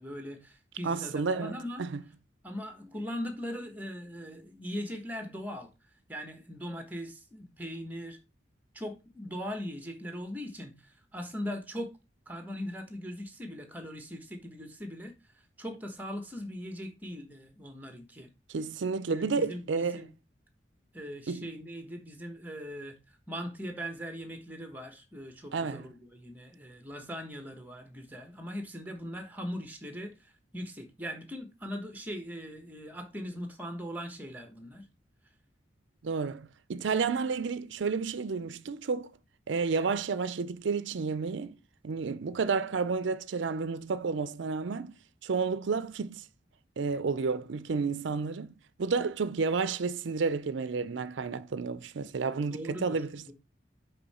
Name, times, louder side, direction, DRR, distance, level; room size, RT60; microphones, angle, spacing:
voice 1, 0.0-1.8 2.4-5.7 6.1-8.2 8.7-11.9 12.3-15.1 15.6-18.3 19.1-20.1 20.9-23.0 23.3-34.9 52.5-53.0 53.3-53.4, equal, 10° right, 1.2 m, -40 dB
voice 2, 0.8-2.0 18.5-20.0 21.3-21.5 25.5-25.9 36.0-39.1 39.5-41.6 41.8-45.0 45.2-46.3 46.8-53.2, right 5 dB, 75° right, 0.5 m, -31 dB
5.5 x 5.4 x 4.2 m
head